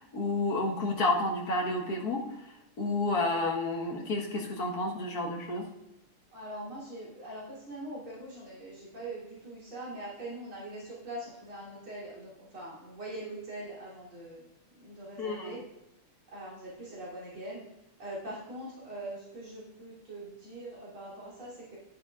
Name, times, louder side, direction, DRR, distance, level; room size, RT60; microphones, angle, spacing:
voice 1, 0.0-2.2 2.8-5.7 15.2-15.6, left 2 dB, 50° left, 0 dB, 1.7 m, -30 dB
voice 2, 6.3-14.5 14.8-15.6 16.3-17.6 18.0-21.8, right 1 dB, 70° right, -7 dB, 3.9 m, -42 dB
10.5 x 10.0 x 2.4 m, 0.92 s
omnidirectional pair, 2.4 m